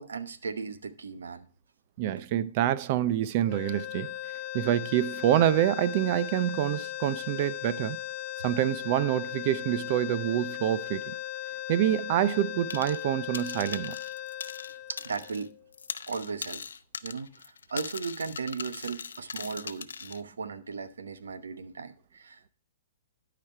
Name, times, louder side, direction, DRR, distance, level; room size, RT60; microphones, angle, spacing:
voice 1, 0.0-1.5 14.9-15.5 16.1-16.6 17.0-22.5, right 5 dB, 90° right, 0.9 m, -37 dB
voice 2, 2.0-4.1 4.5-8.0 8.4-11.1 11.7-14.0, right 12 dB, 45° right, 0.5 m, -26 dB
sound 1, 3.5-15.7, left 14 dB, 40° left, 1.0 m, -38 dB
sound 2, 12.7-13.1 13.3-15.5 15.7-20.2, left 6 dB, 90° left, 0.6 m, -40 dB
12.0 x 5.0 x 4.5 m
hypercardioid pair, 140°, 0 cm